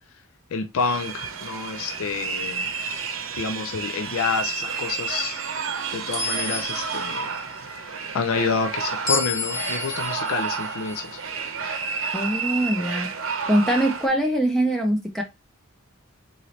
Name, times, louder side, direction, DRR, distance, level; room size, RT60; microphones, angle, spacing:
voice 1, 0.5-2.7 3.4-5.4 5.9-7.3 7.7-11.2, left 5 dB, 75° left, 0.4 m, -28 dB
sound 1, 0.8-14.1, right 5 dB, 65° right, 0.7 m, -31 dB
sound 2, 1.9-2.4 3.0-3.3 6.1-7.2 9.1-12.1, left 3 dB, 45° left, 1.2 m, -32 dB
voice 2, 12.1-13.1 13.5-15.2, right 1 dB, ahead, 0.4 m, -22 dB
3.8 x 2.7 x 3.1 m
head